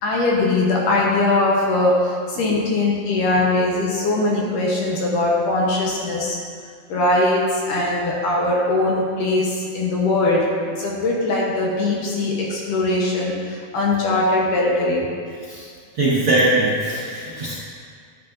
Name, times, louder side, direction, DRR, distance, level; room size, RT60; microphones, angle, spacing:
voice 1, 0.0-6.4 6.9-15.1, left 2 dB, 65° left, -3 dB, 2.3 m, -21 dB
voice 2, 15.9-17.5, right 2 dB, 80° right, -8 dB, 1.1 m, -20 dB
11.0 x 10.5 x 2.6 m, 2.1 s
omnidirectional pair, 4.6 m